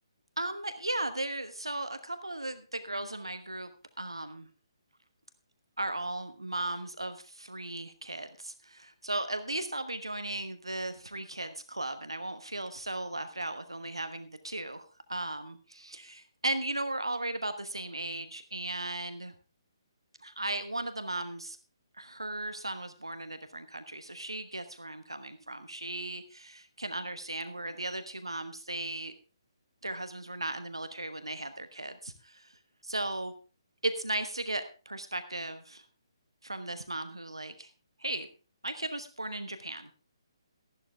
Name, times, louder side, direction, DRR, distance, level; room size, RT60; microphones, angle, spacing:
voice 1, 0.4-3.7 4.0-4.5 5.8-14.8 15.1-19.3 20.2-21.6 22.0-29.1 29.8-33.3 33.8-35.8 36.4-37.7 38.0-38.3 38.6-39.9, right 2 dB, 80° right, 10 dB, 1.1 m, -36 dB
13.5 x 12.0 x 3.4 m, 0.35 s
figure-of-eight pair, 135°, 3 cm